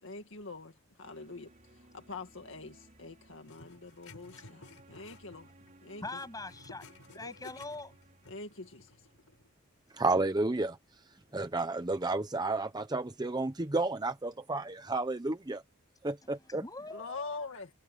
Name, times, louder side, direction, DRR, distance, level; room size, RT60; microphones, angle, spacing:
voice 1, 0.0-5.5 5.8-6.0 7.2-7.4 8.3-9.1 16.9-17.7, left 3 dB, 60° left, 2.1 m, -45 dB
sound 1, 1.0-9.9, right 2 dB, 35° right, 4.9 m, -61 dB
sound 2, 3.4-5.7 6.0-9.5, left 3 dB, 80° left, 3.8 m, -55 dB
voice 2, 6.0-6.9 7.1-7.9 16.2-17.2, left 2 dB, 15° left, 7.9 m, -43 dB
voice 3, 9.9-10.8 11.3-15.6 16.0-16.6, right 2 dB, 20° right, 0.7 m, -31 dB
head